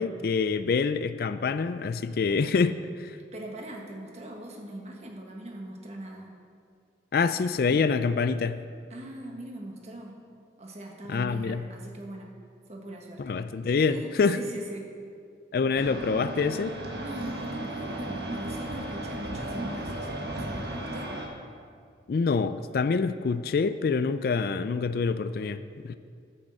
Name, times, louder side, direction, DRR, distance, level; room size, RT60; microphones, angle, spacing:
voice 1, 0.0-3.2 7.1-8.6 11.1-11.6 13.2-14.4 15.5-16.8 22.1-26.0, left 4 dB, 55° left, 12 dB, 0.4 m, -26 dB
voice 2, 3.2-6.3 8.9-10.2 10.6-12.3 12.7-13.4 13.7-14.9 17.0-21.1, right 1 dB, 40° right, 0 dB, 1.4 m, -41 dB
sound 1, 15.7-21.3, right 1 dB, 70° right, 1.4 m, -35 dB
9.8 x 6.5 x 7.4 m, 2.2 s
head